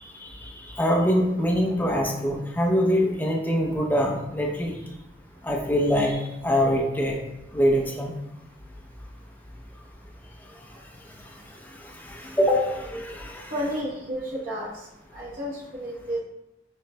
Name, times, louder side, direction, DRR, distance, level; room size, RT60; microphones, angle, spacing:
voice 1, 0.2-0.7 13.5-16.2, equal, 50° right, -7 dB, 1.1 m, -32 dB
voice 2, 0.8-4.8 5.4-7.2 7.5-8.1 12.0-13.5, equal, 10° left, -1 dB, 0.6 m, -24 dB
6.5 x 3.1 x 2.2 m, 0.92 s
head